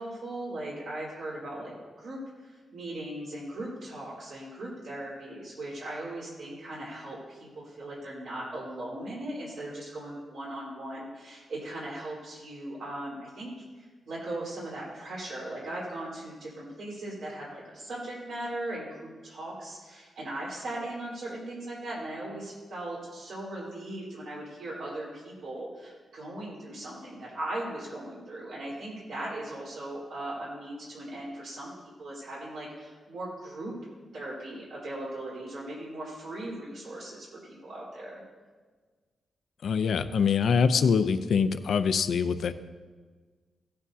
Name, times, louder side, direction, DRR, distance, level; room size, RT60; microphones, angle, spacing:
voice 1, 0.0-31.7 32.0-33.7 34.1-38.2, right 1 dB, 80° right, -7 dB, 4.0 m, -38 dB
voice 2, 39.6-42.5, left 6 dB, 65° left, 11 dB, 0.5 m, -24 dB
16.5 x 9.8 x 2.8 m, 1.4 s
wide cardioid pair, 175°, 0 cm